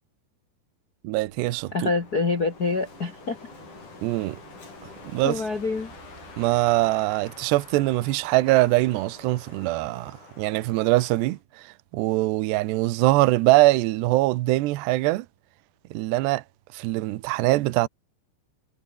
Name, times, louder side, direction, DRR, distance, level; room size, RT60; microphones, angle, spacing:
voice 1, 1.0-1.9 4.0-4.4 5.1-5.4 6.4-15.3 15.9-16.4 16.7-17.9, right 19 dB, 75° right, 2.9 m, -23 dB
sound 1, 1.3-9.9, right 7 dB, 60° right, 5.6 m, -52 dB
Wind, 1.5-11.4, left 4 dB, 45° left, 6.5 m, -47 dB
voice 2, 1.7-3.4 5.2-5.9, left 3 dB, 75° left, 0.8 m, -26 dB
omnidirectional pair, 5.3 m